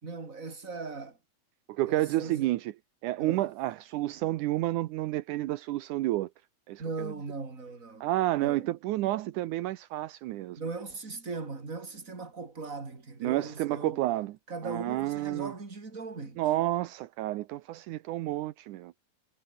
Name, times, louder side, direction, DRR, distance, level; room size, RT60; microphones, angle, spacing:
voice 1, 0.0-1.2 1.9-2.5 3.2-3.5 6.8-8.1 8.4-8.7 10.6-14.0 14.5-16.4, right 4 dB, 25° right, 3.8 m, -39 dB
voice 2, 1.7-2.7 3.0-6.3 6.7-7.1 8.0-10.6 13.2-14.4 14.6-15.5 16.4-18.9, right 16 dB, 80° right, 2.3 m, -30 dB
omnidirectional pair, 3.6 m